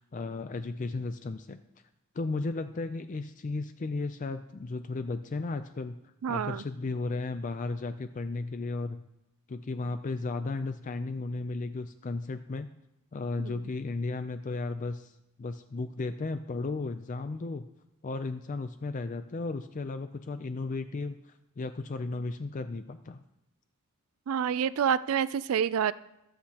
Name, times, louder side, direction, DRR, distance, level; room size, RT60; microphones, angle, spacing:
voice 1, 0.0-1.6 2.1-6.0 6.3-9.0 9.5-12.7 13.1-17.6 18.0-23.2, left 3 dB, 35° left, 10 dB, 0.4 m, -34 dB
voice 2, 6.2-6.6 13.4-13.6 24.3-25.9, right 8 dB, 70° right, 17 dB, 0.3 m, -28 dB
21.5 x 8.0 x 2.9 m, 0.90 s
head